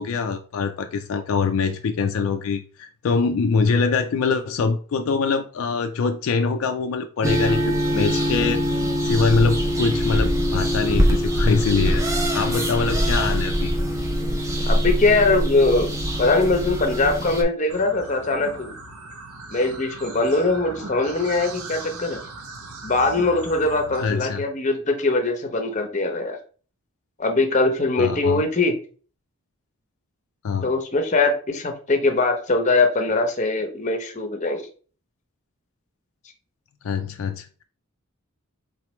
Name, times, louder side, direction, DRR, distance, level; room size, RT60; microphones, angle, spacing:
voice 1, 0.0-8.6 9.0-12.0 12.3-13.7 24.0-24.5 28.0-28.4 30.4-30.7 36.8-37.6, left 5 dB, 70° left, 6 dB, 0.4 m, -24 dB
sound 1, 7.2-17.4, equal, 15° right, 0.4 m, -23 dB
voice 2, 14.7-15.9 16.2-18.8 19.5-22.2 22.8-26.4 27.2-28.8 30.6-34.7, left 3 dB, 35° left, 4 dB, 0.7 m, -21 dB
sound 2, 17.7-24.1, right 3 dB, 85° right, 0.7 m, -38 dB
4.1 x 3.1 x 3.0 m, 0.40 s
head